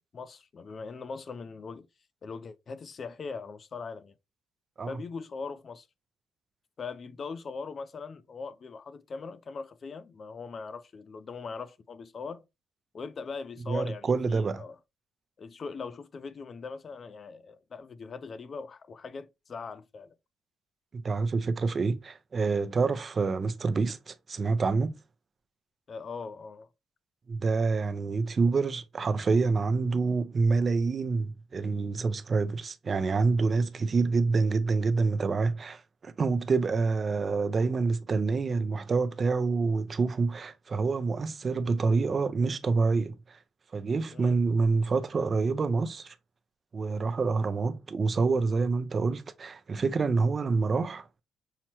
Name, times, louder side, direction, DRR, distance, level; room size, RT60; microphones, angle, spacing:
voice 1, 0.0-1.9 2.2-4.1 4.9-5.9 6.8-12.4 12.9-14.8 15.4-20.1 25.9-26.7 44.1-44.4, left 4 dB, 45° left, 0.4 m, -40 dB
voice 2, 13.7-14.6 20.9-25.0 27.3-43.4 43.7-46.1 46.7-51.2, right 4 dB, 40° right, 0.5 m, -27 dB
5.7 x 2.1 x 2.9 m
cardioid pair, 90°, 0 cm